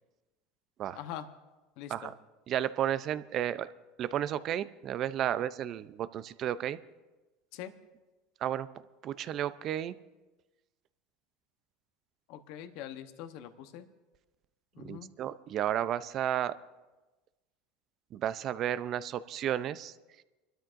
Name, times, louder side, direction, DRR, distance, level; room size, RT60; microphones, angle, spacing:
voice 1, 0.9-1.3 1.8-2.1 7.5-7.7 12.3-13.9 14.7-15.1, left 10 dB, 65° left, 9 dB, 0.9 m, -43 dB
voice 2, 2.5-3.7 4.0-6.8 8.4-8.7 9.0-9.9 14.8-16.6 18.1-19.9, right 11 dB, 45° right, 15 dB, 0.5 m, -32 dB
27.5 x 12.5 x 2.6 m, 1.2 s
supercardioid pair, 105°, 0 cm